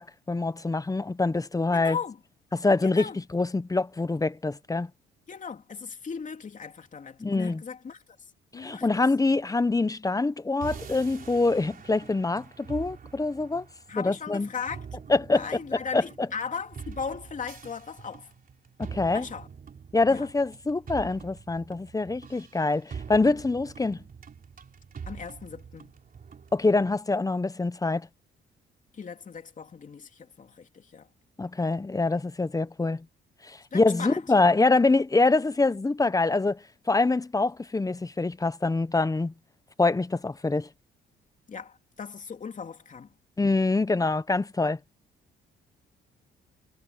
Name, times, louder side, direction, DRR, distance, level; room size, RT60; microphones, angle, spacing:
voice 1, 0.0-2.0 2.5-4.9 7.2-7.6 8.5-13.7 13.9-14.5 15.1-15.5 15.9-16.3 18.8-19.3 19.9-24.0 26.5-28.1 31.4-33.0 33.4-39.3 39.8-40.7 43.4-44.8, left 3 dB, 15° left, 1.0 m, -25 dB
voice 2, 1.7-2.2 2.8-3.2 5.3-8.0 8.5-9.0 13.9-14.8 15.3-18.3 19.1-19.5 20.1-20.3 25.1-25.9 28.9-31.1 33.7-34.2 41.5-43.1, left 6 dB, 40° left, 2.8 m, -37 dB
sound 1, 10.6-27.0, right 6 dB, 45° right, 4.0 m, -44 dB
cardioid pair, 90°, 20 cm